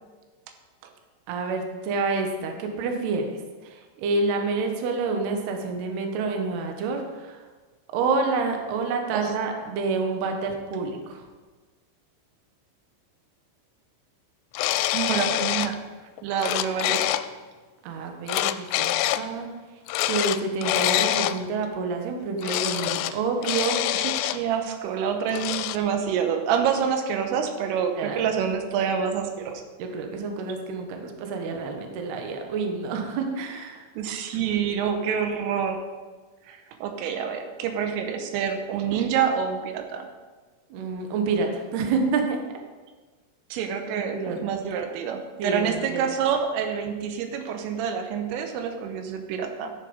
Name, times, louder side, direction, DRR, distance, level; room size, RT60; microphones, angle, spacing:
voice 1, 1.3-3.3 3.6-7.4 7.9-11.2 17.8-19.5 20.0-23.8 28.0-28.2 29.8-33.8 40.7-42.4 43.9-44.4 45.4-46.0, right 4 dB, 65° right, 3 dB, 2.8 m, -28 dB
sound 1, 14.5-15.8 16.2-17.3 18.3-19.3 19.9-21.4 22.4-23.1 23.4-24.4 25.3-25.8, left 14 dB, 85° left, 3.2 m, -25 dB
voice 2, 14.9-15.8 16.2-17.2 23.9-29.6 34.0-35.8 36.5-40.1 43.5-49.7, right 7 dB, 85° right, 5 dB, 3.5 m, -27 dB
14.0 x 7.0 x 5.4 m, 1.4 s
omnidirectional pair, 5.8 m